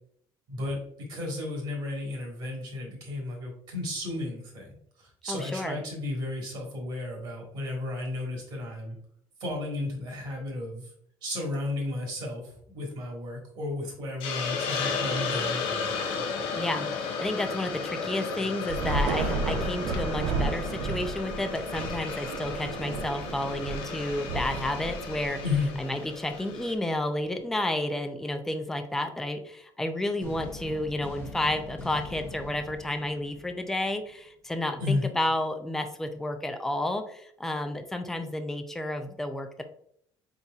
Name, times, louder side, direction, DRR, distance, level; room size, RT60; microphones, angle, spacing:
voice 1, 0.5-9.0 9.4-10.9 11.2-15.9 25.4-25.7 34.8-35.1, left 2 dB, 55° right, -1 dB, 1.5 m, -33 dB
voice 2, 5.3-5.8 16.5-25.4 25.8-39.6, left 1 dB, 5° left, 6 dB, 0.4 m, -31 dB
Hiss, 14.2-26.7, left 5 dB, 75° left, 0.7 m, -34 dB
Thunder / Rain, 18.7-26.2, right 3 dB, 85° right, 0.6 m, -33 dB
sound 1, 30.2-34.2, left 1 dB, 25° left, 0.8 m, -43 dB
4.1 x 3.9 x 2.4 m, 0.66 s
cardioid pair, 150°, 9 cm